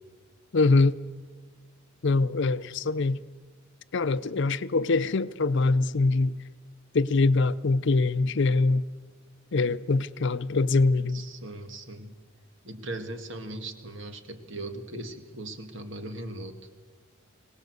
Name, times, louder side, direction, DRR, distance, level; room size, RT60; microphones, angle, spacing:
voice 1, 0.5-1.0 2.0-3.2 3.9-6.4 6.9-8.8 9.5-11.2, left 3 dB, 60° left, 0.6 m, -23 dB
voice 2, 11.1-12.2 12.6-16.6, right 2 dB, 60° right, 2.1 m, -39 dB
23.0 x 18.5 x 8.0 m
head